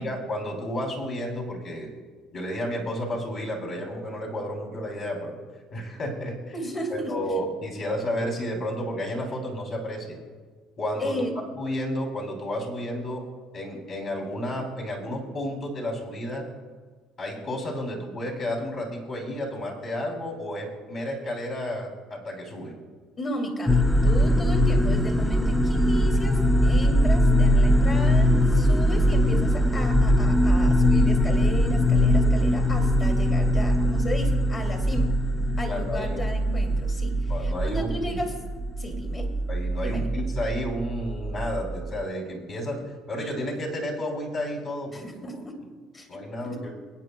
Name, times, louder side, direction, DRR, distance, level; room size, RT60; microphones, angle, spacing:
voice 1, 0.0-1.9 2.3-5.4 5.7-6.5 6.9-10.2 10.8-11.2 11.5-13.2 13.5-16.5 17.2-22.8 35.7-36.2 37.3-38.2 39.5-45.4 46.1-46.7, equal, 45° left, 0 dB, 3.2 m, -32 dB
voice 2, 6.5-7.1 11.0-11.3 23.2-35.1 35.6-38.3 38.8-39.3 39.8-40.1 44.9-45.6 45.9-46.6, equal, 30° left, 2 dB, 2.2 m, -34 dB
sound 1, 23.7-42.0, equal, ahead, 0.5 m, -22 dB
24.5 x 9.2 x 2.3 m, 1.5 s
cardioid pair, 120°, 0 cm